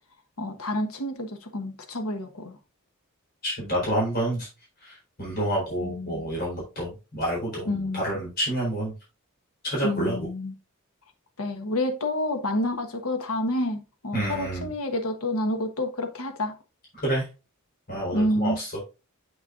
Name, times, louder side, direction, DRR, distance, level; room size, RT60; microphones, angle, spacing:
voice 1, 0.4-2.6 5.8-6.3 7.7-8.0 9.8-10.5 11.4-16.6 18.1-18.6, left 1 dB, 85° left, 1.3 m, -29 dB
voice 2, 3.4-4.5 4.8-8.9 9.6-10.3 14.1-14.7 17.0-17.3 17.9-18.7, right 1 dB, 45° left, 4.1 m, -28 dB
7.4 x 6.4 x 2.5 m
head